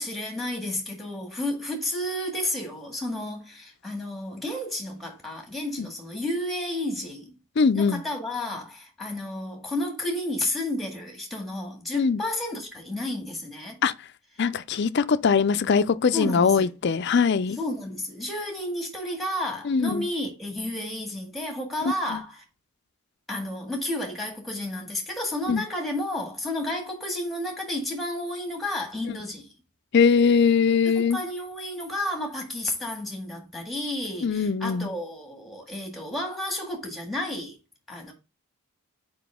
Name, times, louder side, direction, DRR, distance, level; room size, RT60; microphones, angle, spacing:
voice 1, 0.0-7.3 7.7-13.8 16.1-16.7 17.6-22.4 23.3-29.5 30.8-37.6 37.9-38.1, left 1 dB, ahead, 1.8 m, -31 dB
voice 2, 7.6-8.0 11.9-12.2 13.8-13.9 14.4-17.6 19.7-20.1 22.1-22.2 25.5-25.6 29.9-31.2 34.2-34.9, left 5 dB, 50° left, 0.4 m, -21 dB
6.0 x 5.1 x 3.5 m
head